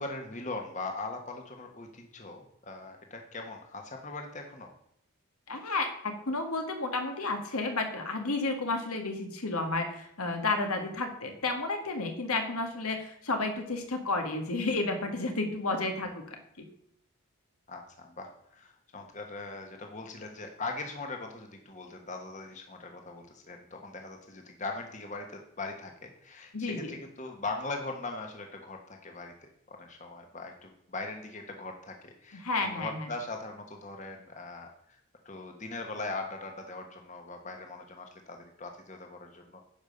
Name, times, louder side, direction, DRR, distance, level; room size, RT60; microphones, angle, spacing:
voice 1, 0.0-4.7 17.7-35.0 35.2-39.6, left 3 dB, 35° left, 3 dB, 1.2 m, -40 dB
voice 2, 5.5-16.7 26.5-27.0 32.3-33.1, left 3 dB, 85° left, 5 dB, 1.9 m, -32 dB
10.5 x 5.4 x 6.7 m, 0.73 s
head